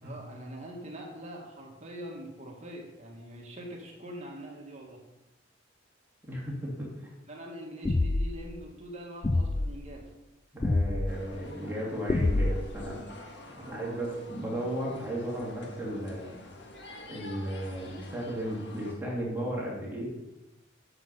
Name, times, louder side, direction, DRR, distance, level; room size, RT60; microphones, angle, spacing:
voice 1, 0.0-5.0 7.3-10.1 13.5-14.1, equal, 35° right, -1 dB, 1.8 m, -43 dB
voice 2, 6.3-7.1 10.5-13.0 13.7-16.4 17.1-20.0, right 1 dB, 10° right, -4 dB, 2.7 m, -35 dB
sound 1, 7.9-8.4 9.2-9.7 10.6-11.1 12.1-12.8, left 2 dB, 20° left, 0.3 m, -26 dB
sound 2, 11.1-18.9, left 2 dB, 60° left, 1.7 m, -48 dB
10.5 x 7.2 x 5.5 m, 0.99 s
head